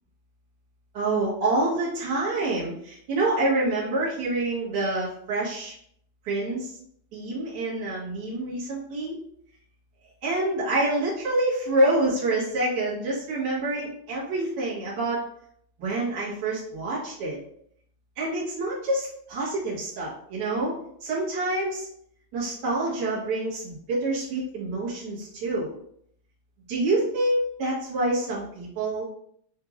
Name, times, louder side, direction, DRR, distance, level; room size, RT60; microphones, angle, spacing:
voice 1, 0.9-5.7 6.2-6.8 7.1-9.2 10.2-15.3 15.8-17.4 18.2-21.9 22.3-25.7 26.7-29.1, right 2 dB, 70° right, -7 dB, 0.9 m, -27 dB
5.7 x 3.0 x 2.5 m, 0.67 s
omnidirectional pair, 4.4 m